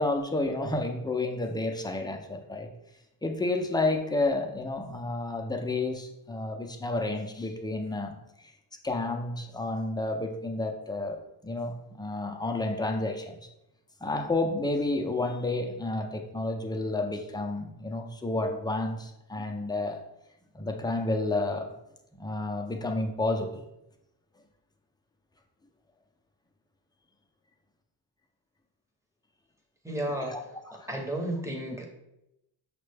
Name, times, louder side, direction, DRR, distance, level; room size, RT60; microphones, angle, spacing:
voice 1, 0.0-2.7 3.2-8.5 8.8-13.4 14.0-20.0 20.5-21.7 22.2-23.6 30.3-30.4 30.8-30.9, left 2 dB, 10° left, 3 dB, 0.5 m, -30 dB
voice 2, 29.8-30.4 30.9-31.9, right 1 dB, 5° right, 1 dB, 0.9 m, -32 dB
5.8 x 2.2 x 3.3 m, 0.86 s
cardioid pair, 75°, 43 cm